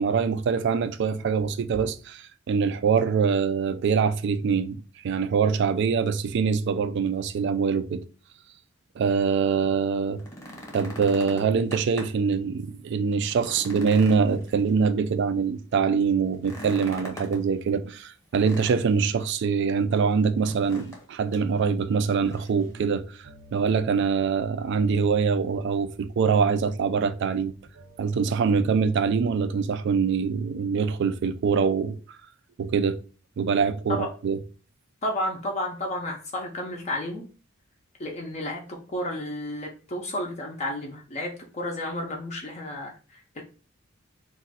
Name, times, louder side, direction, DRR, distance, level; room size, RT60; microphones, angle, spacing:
voice 1, 0.0-8.0 9.0-10.2 10.7-27.5 28.0-32.0 32.6-33.0 33.4-34.4, right 5 dB, 55° right, 0.3 m, -24 dB
sound 1, 10.0-12.3 12.7-12.8 13.2-15.1 16.3-17.4 18.3-19.2 20.4-21.0 21.3-21.5 22.0-22.6 23.7-23.8, equal, 15° left, 0.8 m, -42 dB
sound 2, 22.6-29.4, equal, 80° right, 0.7 m, -48 dB
voice 2, 35.0-37.2 38.0-43.4, left 1 dB, 35° left, 0.4 m, -32 dB
2.4 x 2.2 x 4.0 m
head